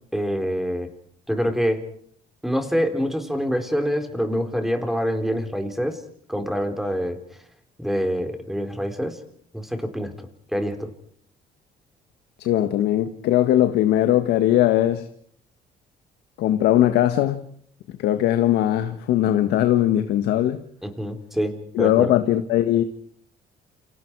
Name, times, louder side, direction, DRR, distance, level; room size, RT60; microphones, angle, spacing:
voice 1, 0.1-0.9 1.3-1.8 2.4-6.0 6.3-7.2 7.8-9.2 9.5-10.1 10.5-10.9 20.8-22.1, equal, ahead, 4.2 m, -25 dB
voice 2, 12.4-15.1 16.4-17.4 18.0-20.6 21.7-22.8, left 12 dB, 80° left, 1.7 m, -20 dB
29.0 x 28.0 x 4.8 m
cardioid pair, 110°, 17 cm